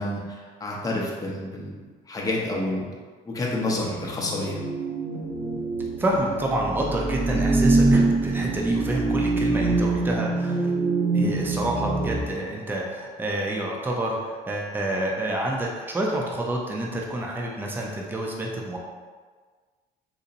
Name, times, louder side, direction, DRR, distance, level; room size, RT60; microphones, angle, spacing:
voice 1, 0.0-1.7 2.1-2.9 3.3-4.6, left 1 dB, 20° left, -3 dB, 0.7 m, -29 dB
sound 1, 3.7-12.2, right 2 dB, 75° right, 1.4 m, -24 dB
voice 2, 6.0-10.7 11.1-18.8, right 1 dB, 10° right, -2 dB, 0.5 m, -28 dB
4.0 x 2.7 x 2.6 m, 1.5 s
cardioid pair, 110°, 17 cm